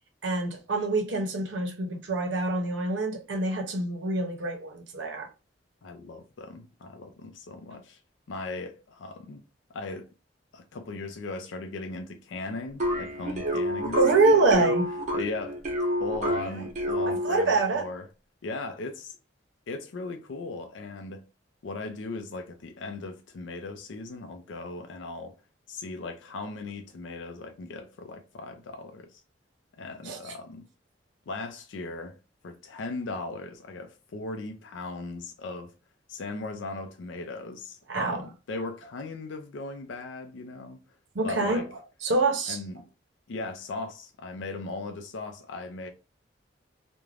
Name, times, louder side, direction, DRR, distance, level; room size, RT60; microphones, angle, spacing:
voice 1, 0.2-5.3 14.0-14.9 17.1-17.9 30.0-30.3 37.9-38.2 41.1-41.6 42.0-42.6, right 3 dB, 80° right, 0.6 m, -25 dB
voice 2, 5.8-8.0 8.3-9.4 9.7-10.1 10.5-14.7 15.1-15.7 16.0-18.1 18.4-19.2 19.7-21.3 21.6-25.3 25.7-29.2 29.8-30.7 31.3-32.2 32.4-35.7 36.1-40.8 41.2-41.7 42.5-42.9 43.3-45.9, left 3 dB, 80° left, 0.4 m, -38 dB
sound 1, 12.8-17.6, equal, 40° right, 0.7 m, -29 dB
2.4 x 2.1 x 3.2 m
head